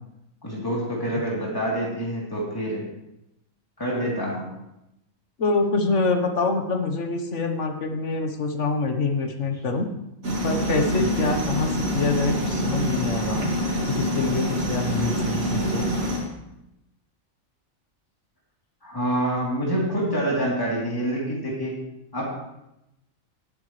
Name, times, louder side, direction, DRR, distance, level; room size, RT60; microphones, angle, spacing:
voice 1, 0.4-2.8 3.8-4.5 11.0-11.3 18.8-21.7 22.1-22.3, right 1 dB, 15° left, -5 dB, 3.2 m, -27 dB
voice 2, 5.4-9.9 10.4-13.5 13.9-15.9, left 3 dB, 60° left, 5 dB, 1.5 m, -25 dB
sound 1, 10.2-16.2, equal, 80° right, 2.8 m, -26 dB
17.5 x 8.8 x 3.3 m, 0.88 s
omnidirectional pair, 1.4 m